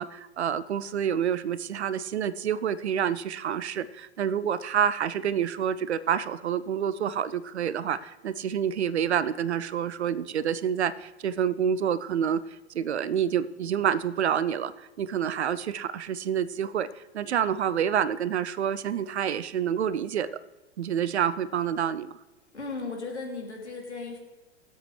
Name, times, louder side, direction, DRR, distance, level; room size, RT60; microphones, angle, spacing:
voice 1, 0.0-12.5 12.7-20.4 20.8-22.1, right 8 dB, 75° right, 16 dB, 0.7 m, -28 dB
voice 2, 22.5-24.2, left 3 dB, 90° left, 0 dB, 2.9 m, -36 dB
23.5 x 7.9 x 3.3 m, 1.2 s
figure-of-eight pair, 95°, 33 cm